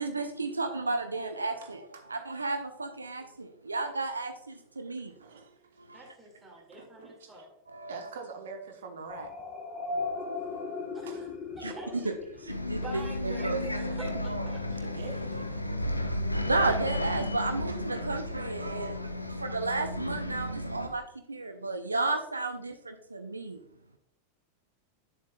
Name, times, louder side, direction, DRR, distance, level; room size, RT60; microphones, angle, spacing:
voice 1, 0.0-5.1 5.8-6.0 7.7-8.0 11.6-12.8 13.2-13.7 16.4-19.0 19.3-23.6, right 3 dB, 80° right, 0.6 m, -33 dB
voice 2, 1.6-2.1 4.8-5.8 6.1-6.4 6.7-7.5 7.9-9.3 11.0-11.2 14.7-15.8, right 4 dB, 60° right, 1.1 m, -46 dB
voice 3, 5.9-7.5 10.9-11.3 11.6-15.1, right 1 dB, 15° right, 2.5 m, -45 dB
sound 1, 9.1-12.8, left 3 dB, 30° left, 1.7 m, -37 dB
Bus, 12.5-20.9, left 1 dB, 85° left, 0.7 m, -33 dB
9.3 x 7.3 x 2.4 m
figure-of-eight pair, 90°, 0 cm